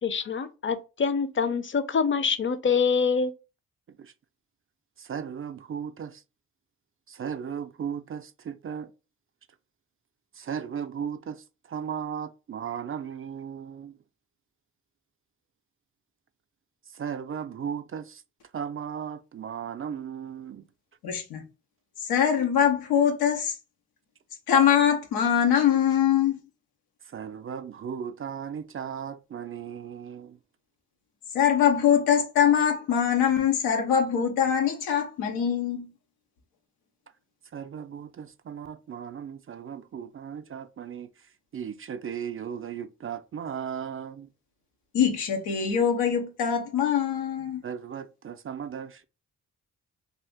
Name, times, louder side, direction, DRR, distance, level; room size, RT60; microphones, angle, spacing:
voice 1, 0.0-3.3, left 5 dB, 35° left, 0.6 m, -25 dB
voice 2, 5.0-6.2 7.1-8.9 10.3-14.0 16.9-18.2 18.5-20.7 27.0-30.4 37.5-44.3 47.6-49.0, right 7 dB, 35° right, 0.4 m, -36 dB
voice 3, 21.0-21.4 22.0-23.6 24.5-26.4 31.3-35.9 44.9-47.6, left 8 dB, 90° left, 0.7 m, -23 dB
2.8 x 2.4 x 3.5 m
supercardioid pair, 45°, 36 cm